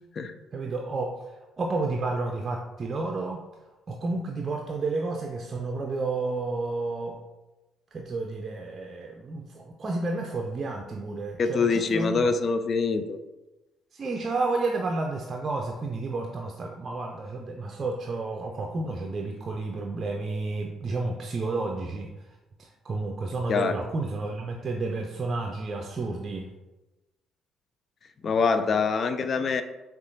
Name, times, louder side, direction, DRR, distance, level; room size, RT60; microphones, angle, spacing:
voice 1, 0.5-1.1 1.6-3.4 3.9-7.2 7.9-12.3 13.9-22.1 22.6-26.5, right 3 dB, 40° right, 1 dB, 0.4 m, -31 dB
voice 2, 11.4-13.2 23.5-23.7 28.2-29.6, left 4 dB, 50° left, 10 dB, 0.4 m, -24 dB
6.2 x 2.4 x 2.6 m, 1.1 s
hypercardioid pair, 50°, 0 cm